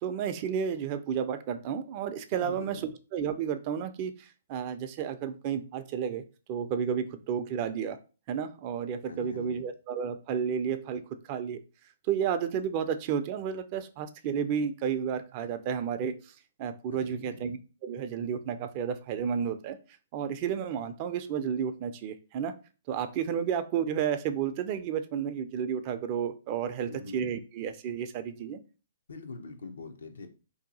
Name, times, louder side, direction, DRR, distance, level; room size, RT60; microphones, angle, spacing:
voice 1, 0.0-2.8 3.1-8.0 8.3-11.6 12.1-16.3 16.6-19.8 20.1-22.5 22.9-28.6, right 8 dB, 40° right, 0.4 m, -32 dB
voice 2, 2.3-2.9 9.1-9.7 16.9-17.5 26.9-27.3 29.1-30.3, left 3 dB, 75° left, 0.6 m, -43 dB
2.7 x 2.3 x 3.9 m
hypercardioid pair, 130°, 0 cm